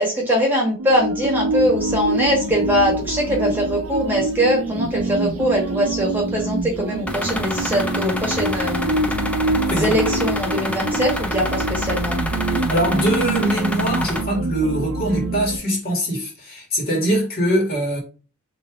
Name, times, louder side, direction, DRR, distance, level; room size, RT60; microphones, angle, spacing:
voice 1, 0.0-8.9 9.7-12.2, equal, 10° right, 1.5 m, -22 dB
sound 1, 0.8-15.6, right 2 dB, 85° right, 0.6 m, -25 dB
sound 2, 7.1-14.2, left 1 dB, 5° left, 0.5 m, -28 dB
voice 2, 9.7-10.1 12.5-18.0, right 1 dB, 50° left, 2.0 m, -22 dB
3.2 x 3.1 x 4.7 m
head